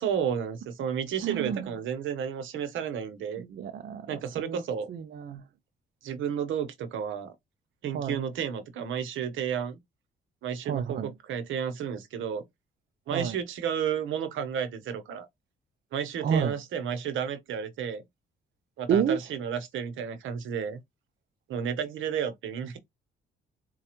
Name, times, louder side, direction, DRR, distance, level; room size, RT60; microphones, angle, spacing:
voice 1, 0.0-3.4 4.1-4.9 6.0-7.3 7.8-9.8 10.4-12.4 13.1-15.3 15.9-18.0 18.8-20.8 21.5-22.8, right 8 dB, 80° right, 0.9 m, -32 dB
voice 2, 1.2-1.7 3.4-4.6 4.9-5.4 7.9-8.2 10.7-11.1 13.1-13.4 16.2-16.6 18.9-19.2, right 7 dB, 50° right, 0.5 m, -30 dB
4.1 x 2.3 x 2.9 m
cardioid pair, 90°, 20 cm